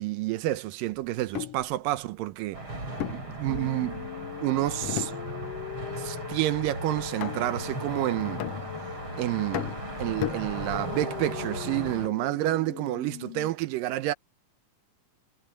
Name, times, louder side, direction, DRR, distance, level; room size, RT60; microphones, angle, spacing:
voice 1, 0.0-2.6 3.1-4.1 4.4-5.1 6.0-8.5 9.2-14.1, right 16 dB, 85° right, 2.5 m, -29 dB
sound 1, 1.2-1.7 3.0-4.0 4.8-5.6 5.9-6.3 7.2-7.7 8.4-9.1 9.5-11.0, left 12 dB, 80° left, 1.3 m, -35 dB
sound 2, 2.5-12.1, right 1 dB, 35° right, 7.9 m, -37 dB
sound 3, 3.5-13.5, left 10 dB, 60° left, 1.9 m, -41 dB
omnidirectional pair, 3.8 m